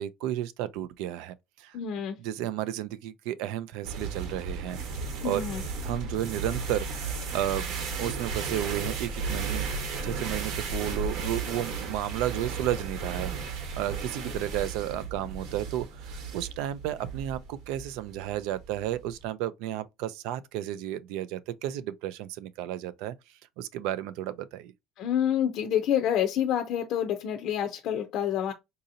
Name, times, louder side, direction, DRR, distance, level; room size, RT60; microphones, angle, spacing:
voice 1, 0.0-1.8 2.2-4.8 5.2-5.4 5.8-9.6 10.0-23.1 23.6-24.7, right 12 dB, 90° right, 0.4 m, -33 dB
voice 2, 1.7-2.2 5.2-5.6 25.0-28.5, left 9 dB, 50° left, 0.5 m, -28 dB
sound 1, 3.8-19.2, right 4 dB, 60° right, 1.0 m, -34 dB
3.9 x 2.7 x 2.5 m
cardioid pair, 180°, 0 cm